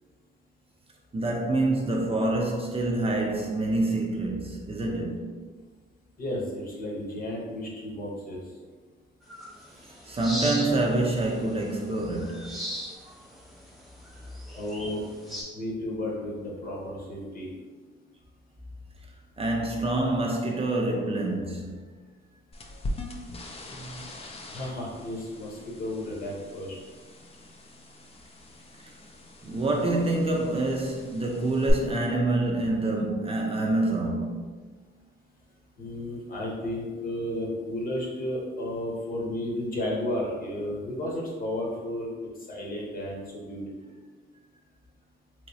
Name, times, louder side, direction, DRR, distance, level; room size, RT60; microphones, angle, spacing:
voice 1, 1.1-5.4 10.1-12.6 19.4-21.8 29.4-34.5, right 2 dB, 30° right, 0.5 m, -27 dB
voice 2, 6.2-8.4 14.5-15.0 15.5-17.5 23.7-24.0 24.5-26.8 35.8-42.1 42.5-43.6, left 1 dB, 45° left, 1.0 m, -33 dB
sound 1, 9.3-15.4, equal, ahead, 0.8 m, -39 dB
sound 2, 22.5-31.7, left 1 dB, 30° left, 0.5 m, -42 dB
3.1 x 2.9 x 2.7 m
cardioid pair, 90°, 20 cm